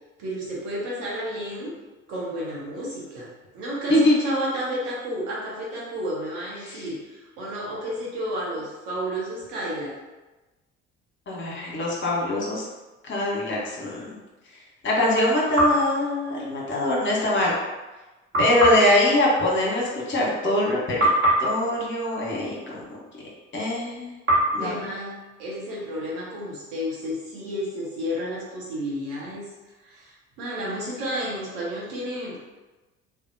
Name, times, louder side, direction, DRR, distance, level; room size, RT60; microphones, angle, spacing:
voice 1, 0.2-1.7 2.1-3.3 3.5-10.0 24.6-29.5 29.8-32.5, equal, 70° right, -5 dB, 1.0 m, -31 dB
voice 2, 11.3-12.6 13.0-14.2 14.8-17.5 18.4-21.0 21.4-23.0 23.5-24.1 24.5-24.7, left 1 dB, 35° left, -4 dB, 1.1 m, -23 dB
sound 1, 15.5-16.9 18.3-20.6 21.0-23.3 24.3-26.1, right 1 dB, 35° right, 1.4 m, -26 dB
2.6 x 2.4 x 2.6 m, 1.1 s
hypercardioid pair, 50°, 34 cm